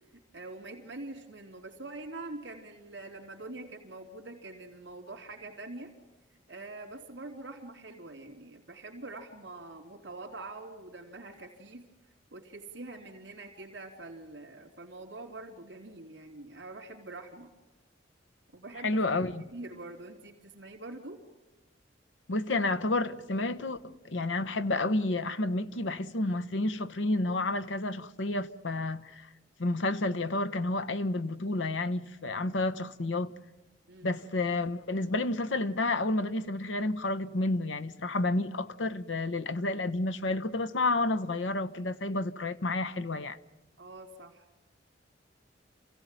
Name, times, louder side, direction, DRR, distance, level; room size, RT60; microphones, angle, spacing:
voice 1, 0.3-5.9 6.5-11.9 12.3-17.5 18.5-19.3 19.5-21.2 33.9-34.1 43.8-44.4, right 2 dB, 70° right, 3.3 m, -44 dB
voice 2, 18.8-19.4 22.3-29.3 29.6-33.3 34.0-43.4, left 2 dB, 90° left, 1.0 m, -30 dB
28.0 x 16.5 x 9.2 m
head